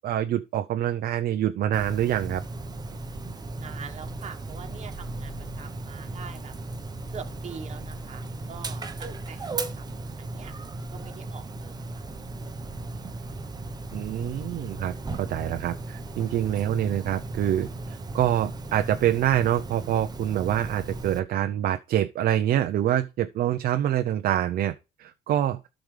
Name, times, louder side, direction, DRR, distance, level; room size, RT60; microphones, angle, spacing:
voice 1, 0.0-2.4 13.9-24.7 25.0-25.6, right 11 dB, 60° right, 0.7 m, -26 dB
Dog, 1.7-21.2, right 2 dB, 25° right, 1.0 m, -36 dB
voice 2, 3.5-6.5 7.1-10.5 10.9-11.8 12.9-13.3, right 6 dB, 40° right, 1.4 m, -44 dB
13.0 x 5.0 x 3.3 m
cardioid pair, 110°, 17 cm